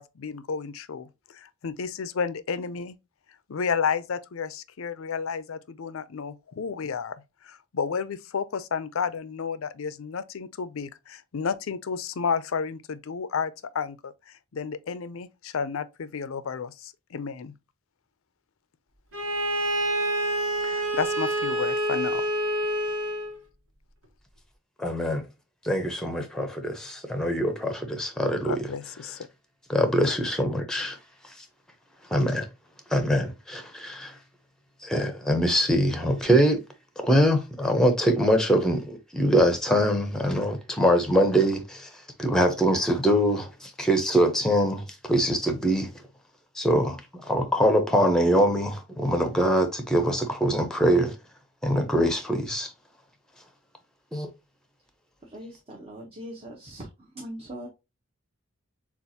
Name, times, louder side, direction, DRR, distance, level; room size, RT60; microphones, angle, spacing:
voice 1, 0.0-3.0 3.5-7.2 7.4-17.5 20.6-22.3 28.4-29.3, left 6 dB, 85° left, 0.5 m, -32 dB
Bowed string instrument, 19.1-23.3, right 1 dB, 75° right, 1.3 m, -27 dB
voice 2, 24.8-25.2 25.6-28.5 29.7-31.0 31.4-31.5 32.1-32.5 32.9-34.1 34.8-36.6 37.0-41.9 42.2-45.9 46.6-51.2 51.6-52.7 54.1-54.3, equal, 5° left, 0.8 m, -23 dB
voice 3, 55.3-57.7, equal, 30° right, 0.9 m, -41 dB
6.9 x 2.5 x 2.8 m
head